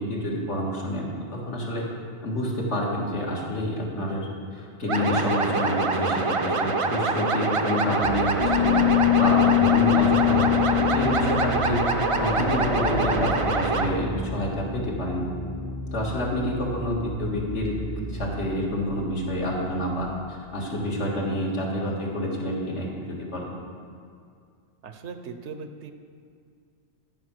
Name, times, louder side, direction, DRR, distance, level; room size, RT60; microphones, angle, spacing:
voice 1, 0.0-1.9 2.2-4.3 4.5-8.9 9.1-11.8 12.2-15.3 15.9-17.8 18.1-23.4, left 1 dB, 75° left, -2 dB, 2.1 m, -28 dB
voice 2, 4.8-5.1 24.8-25.9, right 5 dB, 75° right, 7 dB, 1.0 m, -39 dB
sound 1, 4.9-13.9, right 3 dB, 40° right, 0.5 m, -25 dB
sound 2, 8.0-20.0, equal, 55° left, 2.0 m, -35 dB
sound 3, 8.4-13.4, left 15 dB, 35° left, 0.8 m, -23 dB
12.5 x 5.6 x 6.1 m, 2.2 s
omnidirectional pair, 1.2 m